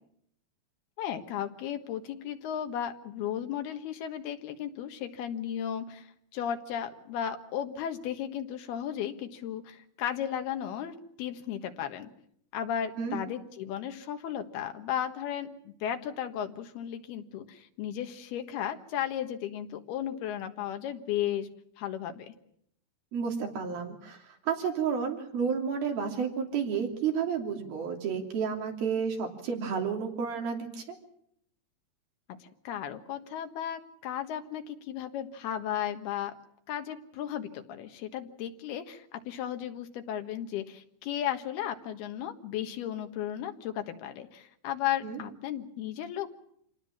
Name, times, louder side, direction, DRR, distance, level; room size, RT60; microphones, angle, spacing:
voice 1, 1.0-12.1 12.5-21.5 21.8-22.3 32.4-36.3 36.7-46.4, left 10 dB, 85° left, 7 dB, 3.5 m, -35 dB
voice 2, 23.1-31.0 45.0-45.2, right 6 dB, 70° right, 2 dB, 4.8 m, -31 dB
27.0 x 18.5 x 7.3 m, 0.70 s
omnidirectional pair, 4.4 m